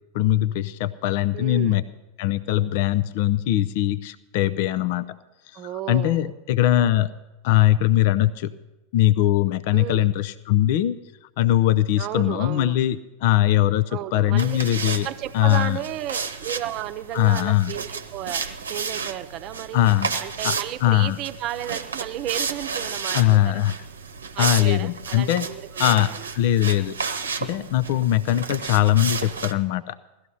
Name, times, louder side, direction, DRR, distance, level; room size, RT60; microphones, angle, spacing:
voice 1, 0.1-1.8 2.2-5.0 5.5-5.6 5.9-7.1 7.4-8.5 8.9-11.0 11.4-15.1 15.3-15.8 17.1-17.7 19.7-20.1 20.4-21.2 23.1-23.8 24.4-25.5 25.8-27.0 27.4-30.0, left 13 dB, 50° left, 15 dB, 0.5 m, -21 dB
voice 2, 1.3-1.8 5.5-6.4 9.7-10.1 12.0-12.8 13.9-14.6 15.0-19.8 20.2-23.6 24.3-26.3, right 13 dB, 40° right, 11 dB, 0.8 m, -33 dB
sound 1, 14.4-29.5, right 5 dB, 75° right, 0.9 m, -32 dB
17.0 x 13.0 x 5.5 m, 1.0 s
figure-of-eight pair, 85°, 0 cm